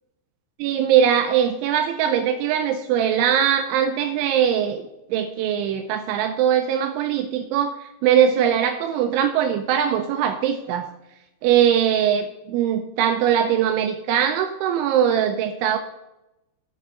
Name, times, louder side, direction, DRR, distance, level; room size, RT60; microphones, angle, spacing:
voice 1, 0.6-4.8 5.1-7.8 8.0-10.9 11.4-15.8, right 9 dB, 80° right, 6 dB, 3.0 m, -21 dB
16.0 x 5.8 x 3.7 m, 0.93 s
omnidirectional pair, 5.5 m